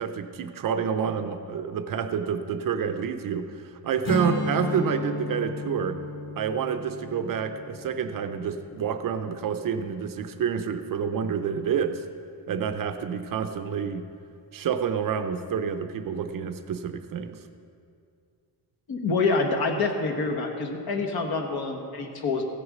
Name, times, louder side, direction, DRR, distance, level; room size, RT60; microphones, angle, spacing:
voice 1, 0.0-6.0 6.4-12.0 12.5-14.1 14.5-17.4, right 7 dB, 50° right, 8 dB, 0.6 m, -28 dB
Strum, 4.0-9.4, left 1 dB, 25° left, 1.6 m, -33 dB
voice 2, 18.9-22.4, left 3 dB, 55° left, 3 dB, 1.4 m, -26 dB
15.5 x 6.4 x 6.1 m, 2.4 s
cardioid pair, 155°, 45 cm